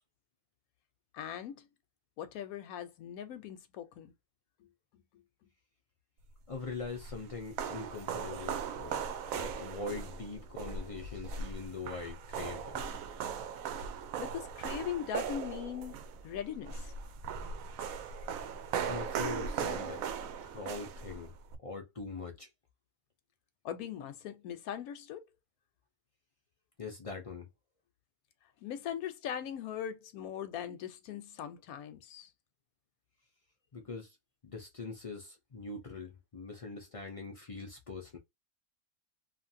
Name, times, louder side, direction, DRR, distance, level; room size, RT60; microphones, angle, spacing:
voice 1, 1.1-1.7 2.2-4.1 14.2-16.9 23.6-25.2 28.6-32.3, left 9 dB, 85° left, 1.1 m, -40 dB
voice 2, 6.5-12.9 18.8-20.0 20.4-21.3 21.6-22.5 26.8-27.5 33.7-34.2 34.4-38.2, left 4 dB, 60° left, 0.3 m, -42 dB
sound 1, 6.5-21.6, right 6 dB, 75° right, 1.0 m, -39 dB
2.8 x 2.5 x 2.6 m
omnidirectional pair, 1.5 m